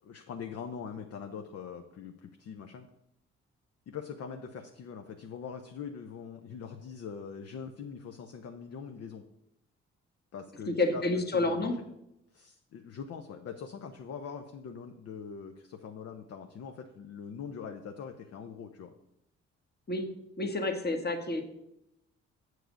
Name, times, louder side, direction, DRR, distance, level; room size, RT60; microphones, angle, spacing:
voice 1, 0.0-2.9 3.9-9.2 10.3-11.7 12.3-18.9, left 6 dB, 45° left, 5 dB, 0.7 m, -43 dB
voice 2, 10.7-11.8 19.9-20.1 20.4-21.4, left 2 dB, 30° left, 5 dB, 1.4 m, -29 dB
7.8 x 4.7 x 6.3 m, 0.83 s
figure-of-eight pair, 40°, 35 cm